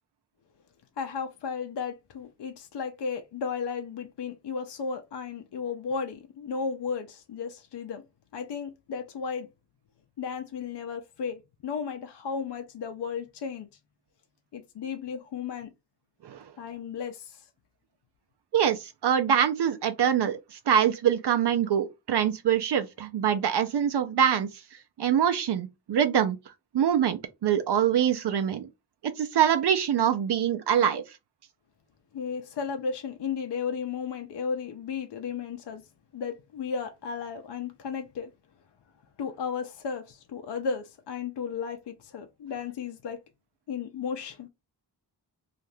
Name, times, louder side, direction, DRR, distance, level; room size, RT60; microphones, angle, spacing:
voice 1, 1.0-8.1 8.3-9.5 10.2-13.7 14.5-15.7 16.6-17.5 32.1-35.8 36.1-38.3 39.2-43.2 43.7-44.5, left 6 dB, 70° left, 0.6 m, -34 dB
voice 2, 18.5-24.5 25.0-26.4 26.7-28.7 29.2-31.0, right 9 dB, 70° right, 0.5 m, -24 dB
2.7 x 2.4 x 3.2 m
wide cardioid pair, 130°, 42 cm